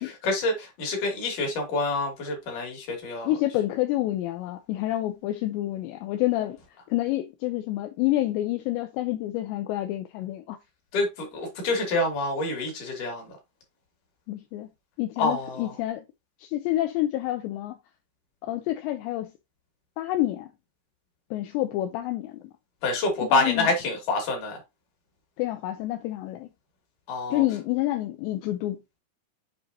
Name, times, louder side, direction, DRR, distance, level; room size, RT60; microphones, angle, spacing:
voice 1, 0.0-3.3 10.9-13.4 15.2-15.7 22.8-24.6 27.1-27.4, left 2 dB, 50° left, 3.4 m, -27 dB
voice 2, 3.2-6.6 6.9-10.6 14.3-14.7 15.0-16.1 16.4-17.8 18.4-19.3 20.0-20.5 21.3-22.4 23.3-23.7 25.4-26.5 27.3-28.8, left 15 dB, 80° left, 2.8 m, -28 dB
7.6 x 4.9 x 2.7 m
omnidirectional pair, 5.4 m